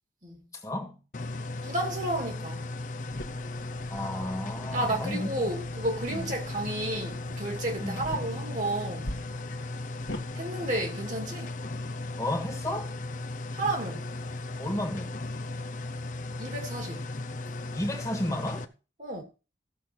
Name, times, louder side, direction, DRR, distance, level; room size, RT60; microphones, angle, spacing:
voice 1, 0.5-1.0 3.9-5.3 6.1-6.3 7.8-8.1 12.2-12.9 14.6-15.2 17.7-18.7, left 1 dB, 15° left, 1.6 m, -33 dB
sound 1, 1.1-18.6, left 2 dB, 40° left, 0.7 m, -36 dB
voice 2, 1.6-2.8 4.7-9.2 10.3-11.5 13.5-14.1 16.4-17.1 19.0-19.2, right 1 dB, 40° right, 2.4 m, -32 dB
sound 2, 3.1-10.2, left 1 dB, 70° left, 1.7 m, -44 dB
15.5 x 6.9 x 4.4 m
head